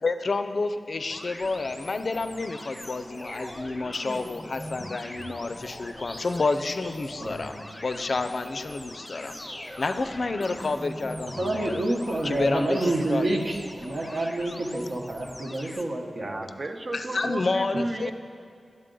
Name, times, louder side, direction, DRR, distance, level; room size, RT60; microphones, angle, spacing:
voice 1, 0.0-7.5 7.8-9.3 9.8-11.8 12.2-13.4 14.0-14.1 16.9-18.1, left 3 dB, 60° left, 9 dB, 0.4 m, -29 dB
sound 1, 1.1-15.8, left 1 dB, 15° left, 0.6 m, -41 dB
voice 2, 7.2-7.6 11.4-13.5 13.8-16.4, right 2 dB, 70° right, 0 dB, 1.0 m, -28 dB
voice 3, 16.2-18.1, right 2 dB, 40° right, 6 dB, 0.6 m, -33 dB
9.7 x 7.4 x 3.8 m, 2.3 s
cardioid pair, 55°, 0 cm